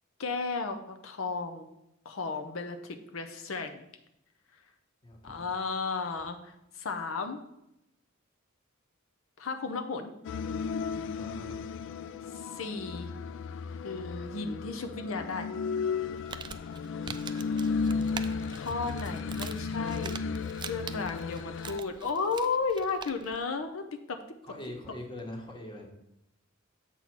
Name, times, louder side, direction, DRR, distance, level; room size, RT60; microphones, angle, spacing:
voice 1, 0.2-1.7 2.0-3.9 5.2-7.4 9.4-10.1 12.3-13.1 13.8-15.5 18.5-20.2 20.7-23.8 24.1-24.2, left 4 dB, 90° left, 6 dB, 0.7 m, -34 dB
voice 2, 5.0-5.5 11.2-11.6 17.2-18.1 20.7-21.1 24.4-25.9, left 1 dB, 25° left, 1 dB, 1.3 m, -44 dB
sound 1, 10.2-21.8, left 5 dB, 65° left, 0.3 m, -34 dB
Crumpling crinkling, 16.0-23.4, right 6 dB, 20° right, 0.3 m, -44 dB
7.3 x 4.2 x 6.0 m, 0.84 s
head